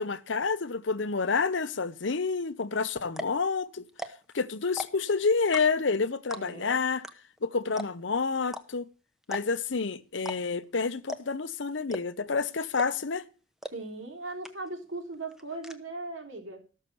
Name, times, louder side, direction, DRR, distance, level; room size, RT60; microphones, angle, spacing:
voice 1, 0.0-3.9 4.3-7.0 7.4-8.9 9.3-13.2, left 4 dB, 70° left, 0.8 m, -29 dB
sound 1, 2.6-2.7 3.1-3.4 3.9-4.3 4.6-5.1 5.5-5.9 6.3-6.6 7.0-7.1 7.4-7.5 7.8-8.1 8.5-8.6 9.2-9.7 10.2-10.4 10.6-10.7 11.1-11.4 11.9-12.3 12.8-13.1 13.6-13.7 14.1-14.2 14.4-14.9 15.1-15.7, equal, ahead, 0.8 m, -38 dB
voice 2, 6.3-6.8 13.7-16.6, right 2 dB, 90° right, 3.4 m, -38 dB
14.0 x 6.6 x 6.8 m
head